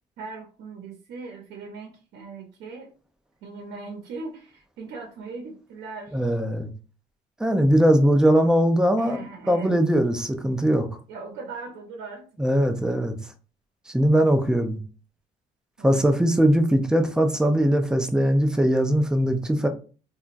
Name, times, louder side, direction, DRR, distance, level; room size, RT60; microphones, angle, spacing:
voice 1, 0.2-2.9 3.4-6.3 9.0-9.7 11.1-12.3 15.8-16.1, right 4 dB, 80° right, 0.7 m, -39 dB
voice 2, 6.1-6.7 7.4-9.2 9.5-10.9 12.4-13.2 13.9-14.8 15.8-19.7, equal, 5° right, 0.4 m, -20 dB
2.9 x 2.3 x 2.5 m
cardioid pair, 110°, 17 cm